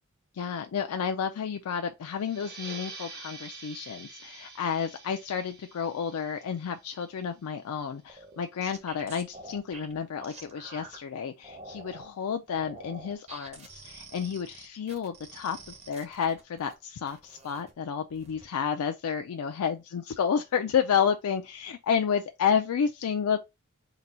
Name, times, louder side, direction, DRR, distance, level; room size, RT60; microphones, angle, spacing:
voice 1, 0.3-23.4, left 7 dB, 75° left, 0.4 m, -30 dB
sound 1, 2.1-7.4, right 3 dB, 45° right, 1.2 m, -46 dB
sound 2, 8.1-11.0 11.4-12.1 12.5-16.7 17.1-17.7 18.1-18.5, right 2 dB, 30° right, 0.8 m, -47 dB
3.9 x 2.2 x 4.2 m
head